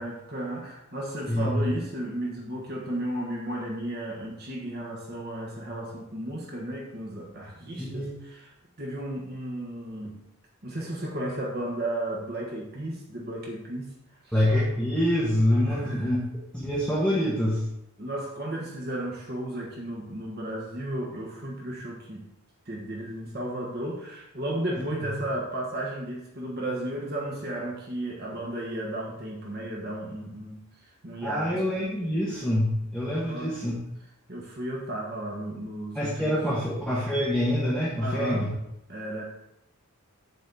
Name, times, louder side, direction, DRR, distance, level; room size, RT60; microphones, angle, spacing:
voice 1, 0.0-8.5 8.8-10.1 10.6-14.4 15.7-16.1 18.0-22.2 22.6-30.6 31.0-31.5 33.3-33.6 34.3-36.6 38.0-38.5 38.9-39.2, right 1 dB, 45° right, -2 dB, 1.4 m, -34 dB
voice 2, 1.3-1.6 7.8-8.1 14.3-16.2 16.5-17.6 24.8-24.9 31.2-33.7 35.9-38.5, left 1 dB, 5° left, -8 dB, 1.5 m, -26 dB
7.9 x 4.3 x 6.9 m, 0.82 s
head